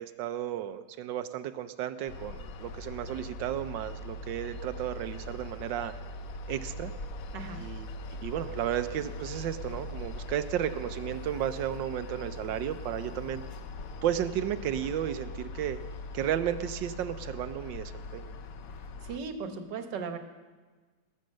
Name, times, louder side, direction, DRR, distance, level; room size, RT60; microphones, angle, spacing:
voice 1, 0.0-5.9 6.5-6.9 7.5-7.9 8.2-13.4 14.0-15.8 16.1-18.3, right 11 dB, 90° right, 11 dB, 1.4 m, -33 dB
sound 1, 2.1-19.2, left 2 dB, 60° left, 1.0 m, -41 dB
voice 2, 7.3-7.7 19.0-20.2, right 5 dB, 70° right, 7 dB, 1.7 m, -37 dB
19.5 x 7.7 x 6.4 m, 1.4 s
omnidirectional pair, 2.0 m